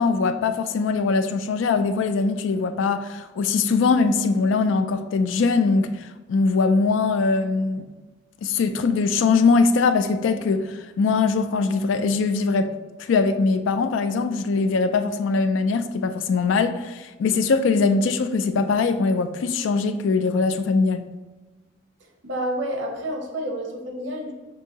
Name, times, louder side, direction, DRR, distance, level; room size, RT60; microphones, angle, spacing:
voice 1, 0.0-7.8 8.4-12.7 13.0-21.1, left 4 dB, 80° left, 10 dB, 0.3 m, -21 dB
voice 2, 22.2-24.3, right 1 dB, 70° right, 1 dB, 0.9 m, -29 dB
6.0 x 2.7 x 2.7 m, 1.2 s
head